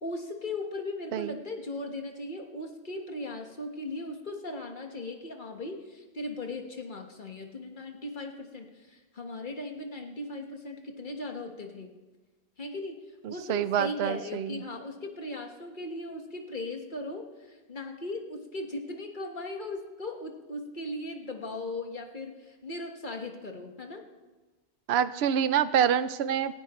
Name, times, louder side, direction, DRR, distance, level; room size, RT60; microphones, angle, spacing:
voice 1, 0.0-11.9 12.6-13.0 13.3-24.0, left 2 dB, 50° left, 3 dB, 1.7 m, -38 dB
voice 2, 13.2-14.6 24.9-26.6, right 9 dB, 75° right, 14 dB, 0.9 m, -27 dB
18.5 x 16.5 x 3.1 m, 1.2 s
omnidirectional pair, 1.1 m